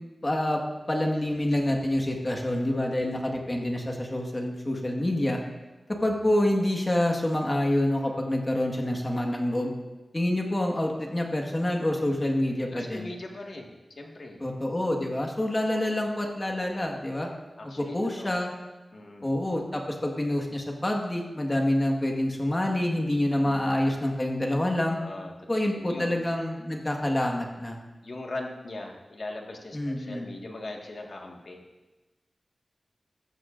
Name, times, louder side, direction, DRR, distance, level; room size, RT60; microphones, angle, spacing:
voice 1, 0.2-0.6 0.9-5.4 6.0-9.7 10.1-13.1 14.4-17.3 17.8-18.5 19.2-25.0 25.5-27.8 29.7-30.3, left 1 dB, 25° left, 1 dB, 1.6 m, -27 dB
voice 2, 12.7-13.7 14.0-14.4 15.7-15.8 17.6-18.4 18.9-19.3 25.0-26.1 28.0-31.6, left 2 dB, 60° left, 0 dB, 1.8 m, -40 dB
14.0 x 14.0 x 2.6 m, 1.2 s
wide cardioid pair, 90°, 0 cm